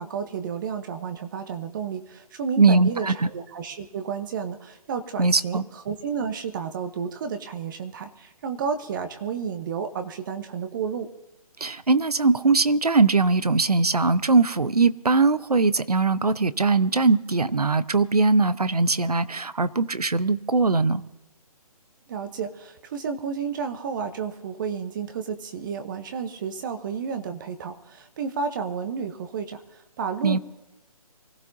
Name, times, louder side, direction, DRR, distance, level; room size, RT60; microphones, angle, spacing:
voice 1, 0.0-11.1 22.1-30.4, right 6 dB, 35° right, 0.8 m, -31 dB
voice 2, 2.6-3.3 5.2-5.6 11.6-21.0 30.2-30.4, right 3 dB, 90° right, 0.8 m, -21 dB
24.5 x 15.0 x 2.7 m
figure-of-eight pair, 140°, 19 cm